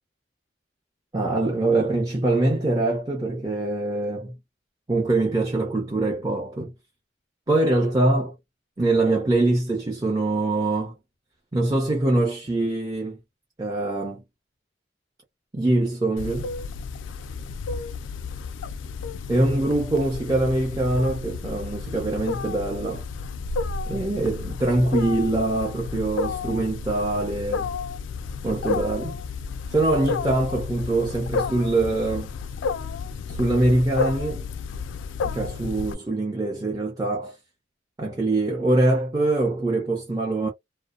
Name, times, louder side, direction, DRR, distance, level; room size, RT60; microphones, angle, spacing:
voice 1, 1.1-4.3 4.9-6.7 7.5-8.3 8.8-10.9 11.5-13.2 13.6-14.2 15.5-16.5 19.3-23.0 23.9-27.7 28.4-29.2 29.7-32.3 33.3-34.4 35.2-37.4 38.0-40.5, right 2 dB, 20° right, 0.6 m, -23 dB
Wild animals, 16.2-35.9, left 5 dB, 80° left, 0.3 m, -32 dB
2.6 x 2.0 x 2.3 m
head